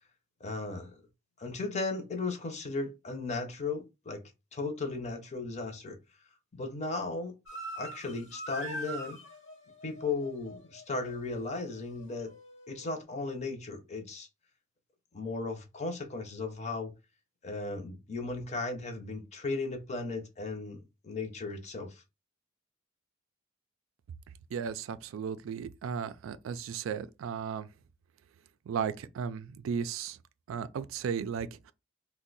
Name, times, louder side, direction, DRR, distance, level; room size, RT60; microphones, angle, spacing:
voice 1, 0.4-1.0 1.4-4.2 4.5-6.0 6.5-7.3 7.8-9.2 9.8-12.3 12.7-14.3 15.1-16.9 17.4-22.0, left 3 dB, 35° left, 0.6 m, -36 dB
sound 1, 7.5-13.0, right 1 dB, 65° left, 0.8 m, -44 dB
voice 2, 24.5-27.7 28.7-30.2 30.5-31.7, right 7 dB, 85° right, 0.3 m, -35 dB
2.6 x 2.1 x 3.9 m
head